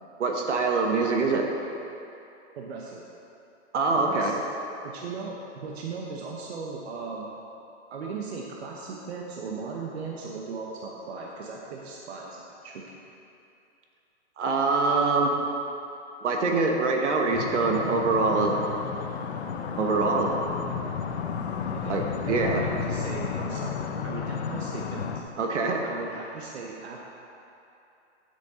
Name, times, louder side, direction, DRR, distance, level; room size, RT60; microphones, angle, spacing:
voice 1, 0.2-1.5 3.7-4.3 14.4-15.3 16.2-18.6 19.8-20.4 21.9-22.6 25.4-25.8, right 3 dB, 75° right, 2 dB, 1.5 m, -24 dB
voice 2, 2.6-3.0 3.9-4.4 4.8-7.3 7.9-13.0 21.7-22.0 22.2-25.2 25.8-27.0, right 4 dB, 60° right, -2 dB, 1.2 m, -38 dB
sound 1, 17.3-25.2, left 6 dB, 65° left, 0.8 m, -32 dB
12.0 x 6.5 x 4.3 m, 2.8 s
hypercardioid pair, 170°, 35 cm